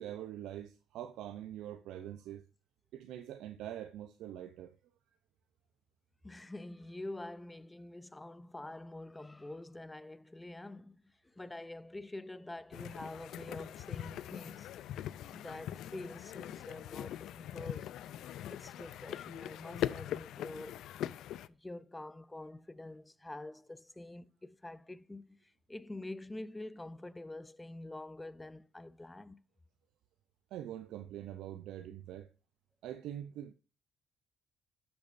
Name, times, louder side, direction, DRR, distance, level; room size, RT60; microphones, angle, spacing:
voice 1, 0.0-2.4 2.9-4.7 30.5-32.3 32.8-33.5, right 11 dB, 85° right, 0.5 m, -44 dB
voice 2, 6.2-14.7 15.3-18.0 18.5-20.8 21.5-29.4, left 2 dB, 15° left, 0.5 m, -46 dB
sound 1, 12.7-21.5, left 12 dB, 80° left, 0.3 m, -41 dB
12.0 x 6.9 x 2.5 m
cardioid pair, 90°, 0 cm